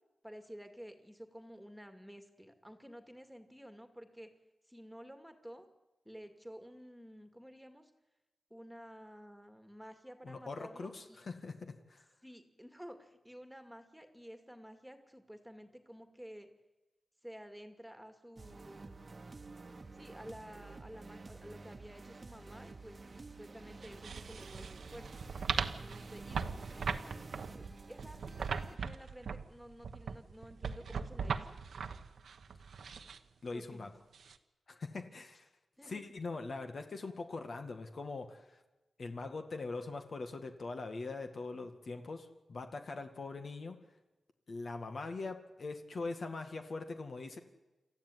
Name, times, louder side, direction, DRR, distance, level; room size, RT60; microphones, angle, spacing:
voice 1, 0.2-4.3 4.7-5.7 6.1-7.9 8.5-11.2 12.2-16.5 17.2-19.1 19.9-25.3 25.8-26.4 26.7-27.1 27.5-31.6 33.5-33.9 35.8-36.0, equal, ahead, 7 dB, 2.3 m, -52 dB
voice 2, 10.2-12.0 33.4-33.9 34.7-35.5 35.8-38.6 39.0-43.8 44.5-47.4, left 3 dB, 55° left, 6 dB, 2.1 m, -42 dB
sound 1, 18.4-28.8, right 3 dB, 35° right, 1.3 m, -51 dB
sound 2, 23.8-33.2 34.1-34.3, right 5 dB, 80° right, 1.2 m, -39 dB
27.5 x 14.0 x 9.5 m, 1.1 s
wide cardioid pair, 110°, 0 cm